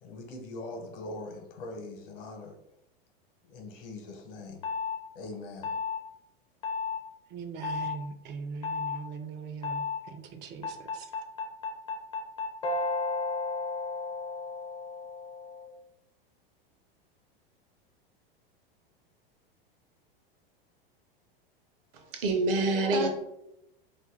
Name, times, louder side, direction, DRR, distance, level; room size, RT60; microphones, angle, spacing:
voice 1, 0.0-2.6 3.4-4.6 5.1-5.7, left 2 dB, 65° left, 0.9 m, -42 dB
sound 1, 4.6-5.0 5.6-6.0 6.6-7.0 7.6-8.0 8.6-9.0 9.6-10.0 10.6-15.7, left 4 dB, 20° left, 0.4 m, -33 dB
voice 2, 7.3-11.1, right 5 dB, 35° right, 0.5 m, -40 dB
voice 3, 21.9-23.1, right 2 dB, 65° right, 0.8 m, -26 dB
2.6 x 2.5 x 3.7 m
hypercardioid pair, 110°, 29 cm